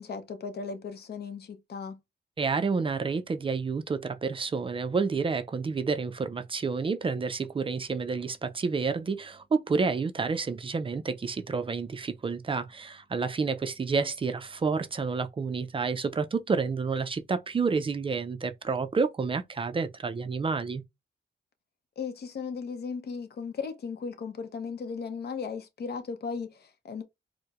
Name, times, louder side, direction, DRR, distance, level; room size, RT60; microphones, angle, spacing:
voice 1, 0.0-2.0 22.0-27.0, left 5 dB, 55° left, 0.7 m, -36 dB
voice 2, 2.4-20.8, right 4 dB, 30° right, 0.3 m, -29 dB
4.4 x 2.1 x 2.3 m
cardioid pair, 115°, 19 cm